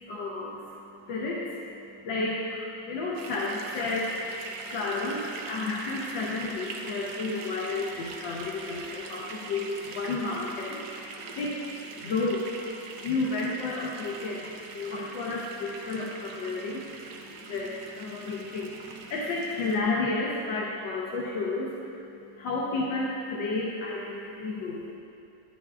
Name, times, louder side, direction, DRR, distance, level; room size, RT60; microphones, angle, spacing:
voice 1, 0.0-24.9, left 3 dB, 80° left, -4 dB, 1.5 m, -32 dB
sound 1, 3.2-19.8, right 4 dB, 70° right, 1.2 m, -42 dB
10.5 x 9.2 x 2.3 m, 2.6 s
omnidirectional pair, 2.0 m